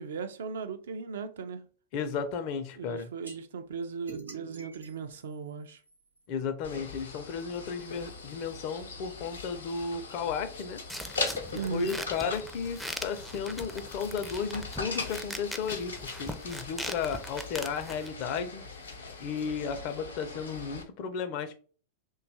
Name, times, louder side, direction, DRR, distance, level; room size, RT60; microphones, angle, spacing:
voice 1, 0.0-1.7 2.8-5.8 11.5-12.0, right 5 dB, 75° right, 0.4 m, -37 dB
voice 2, 1.9-3.1 6.3-10.8 11.5-18.6 19.2-21.5, left 6 dB, 50° left, 0.5 m, -34 dB
sound 1, 3.2-3.4 4.1-6.3, right 5 dB, 90° right, 0.8 m, -47 dB
sound 2, 6.6-20.8, left 4 dB, 85° left, 0.7 m, -40 dB
sound 3, 10.9-18.1, equal, ahead, 0.4 m, -41 dB
2.7 x 2.3 x 2.7 m
hypercardioid pair, 100°, 0 cm